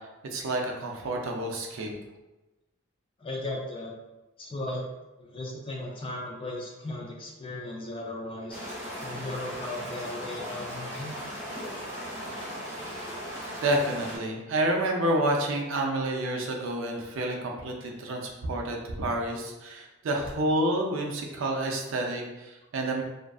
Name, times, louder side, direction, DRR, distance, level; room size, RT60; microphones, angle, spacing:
voice 1, 0.3-1.9 13.6-23.0, right 1 dB, 65° right, 1 dB, 0.4 m, -29 dB
voice 2, 3.2-3.9 4.4-4.9 5.2-8.7 9.0-11.1, left 2 dB, 25° left, -2 dB, 0.4 m, -36 dB
sound 1, 8.5-14.2, equal, 15° right, 0.6 m, -37 dB
2.5 x 2.3 x 2.3 m, 1.1 s
head